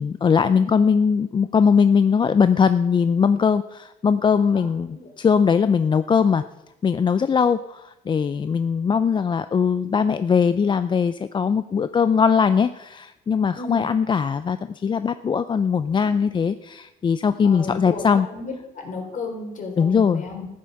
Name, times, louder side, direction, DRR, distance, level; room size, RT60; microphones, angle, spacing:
voice 1, 0.0-6.4 6.8-18.3 19.8-20.2, left 6 dB, 30° left, 12 dB, 0.5 m, -20 dB
voice 2, 17.4-20.5, left 3 dB, 50° left, 2 dB, 3.8 m, -33 dB
14.0 x 9.1 x 6.4 m, 0.91 s
cardioid pair, 110°, 17 cm